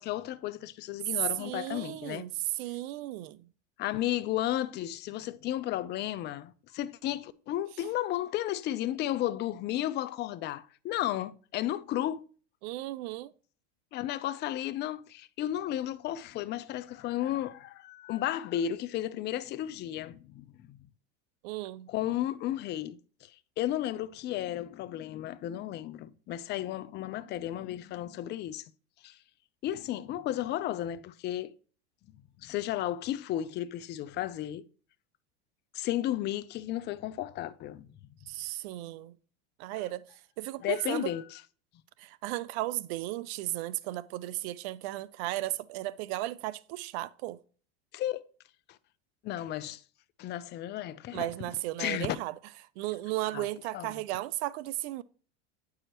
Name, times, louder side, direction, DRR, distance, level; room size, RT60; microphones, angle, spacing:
voice 1, 0.0-2.2 3.8-12.3 13.9-20.8 21.9-23.3 23.6-28.6 29.0-29.2 29.6-31.5 32.4-34.6 35.7-37.9 40.6-41.4 47.9-48.2 49.2-49.8 50.2-51.3 51.8-52.2 53.3-53.5 53.7-54.0, left 13 dB, 30° left, 0.4 m, -33 dB
voice 2, 1.4-3.5 12.6-13.3 21.4-21.9 38.3-39.1 39.6-40.0 40.4-41.1 42.0-47.4 51.1-52.3 52.8-55.0, right 17 dB, 60° right, 0.5 m, -35 dB
8.8 x 4.8 x 2.9 m
hypercardioid pair, 105°, 36 cm